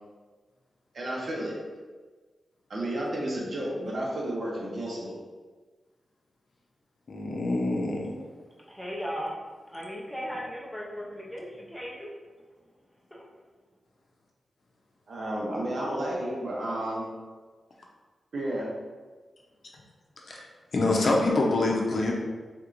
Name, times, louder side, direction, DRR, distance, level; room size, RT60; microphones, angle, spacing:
voice 1, 0.9-1.6 2.7-5.1 15.1-17.1 18.3-18.7, right 1 dB, 50° right, -4 dB, 0.9 m, -31 dB
voice 2, 7.1-8.1 20.3-20.4 20.7-22.1, left 2 dB, 50° left, -1 dB, 0.7 m, -25 dB
voice 3, 8.7-9.3 9.7-12.1 13.1-13.2, equal, ahead, -3 dB, 0.5 m, -36 dB
4.4 x 3.6 x 2.5 m, 1.4 s
wide cardioid pair, 180°, 0 cm